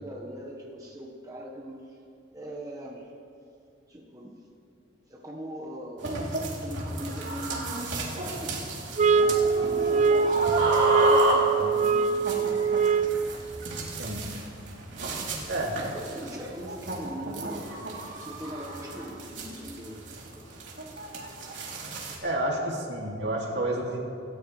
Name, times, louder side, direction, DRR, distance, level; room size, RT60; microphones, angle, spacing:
voice 1, 0.0-2.0 2.3-3.1 3.9-4.4 5.1-6.1 6.5-9.3 9.6-12.6 15.7-17.7 18.1-20.7, equal, 20° right, -2 dB, 1.4 m, -41 dB
sound 1, 6.0-22.2, right 2 dB, 75° right, 3.2 m, -32 dB
sound 2, 9.0-13.3, right 5 dB, 35° right, 0.4 m, -23 dB
voice 2, 13.9-14.2 15.5-15.8 22.2-24.0, right 1 dB, 60° right, -1 dB, 2.6 m, -30 dB
26.5 x 14.0 x 3.3 m, 2.5 s
head